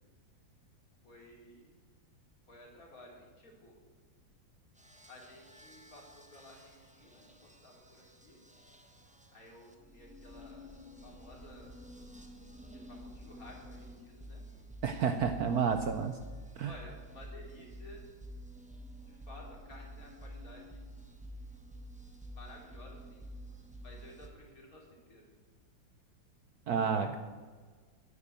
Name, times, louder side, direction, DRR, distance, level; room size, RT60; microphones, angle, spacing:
voice 1, 1.0-1.7 2.5-3.8 5.1-8.4 9.3-10.7 11.0-11.8 12.7-14.4 16.6-18.0 19.1-20.8 22.3-23.3 23.8-25.3, left 1 dB, 45° left, -1 dB, 3.3 m, -54 dB
sound 1, 4.8-24.3, equal, 5° right, 0.7 m, -50 dB
voice 2, 14.8-16.2 16.6-16.7 26.7-27.2, right 6 dB, 65° right, 8 dB, 1.1 m, -30 dB
10.5 x 8.4 x 9.0 m, 1.5 s
omnidirectional pair, 2.1 m